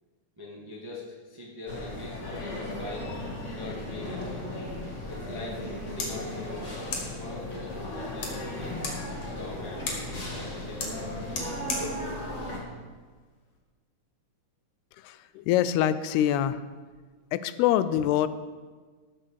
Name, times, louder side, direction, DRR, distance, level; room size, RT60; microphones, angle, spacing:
voice 1, 0.4-3.1 3.6-4.6 5.1-8.8 9.2-9.9 10.4-11.2, left 2 dB, 15° right, -4 dB, 0.7 m, -42 dB
sound 1, 1.7-12.6, left 1 dB, 35° left, 1.2 m, -36 dB
sound 2, 5.9-13.6, left 4 dB, 60° left, 3.4 m, -40 dB
voice 2, 15.0-16.6 17.3-18.3, left 11 dB, 90° left, 13 dB, 2.6 m, -25 dB
14.0 x 6.6 x 6.5 m, 1.4 s
omnidirectional pair, 4.5 m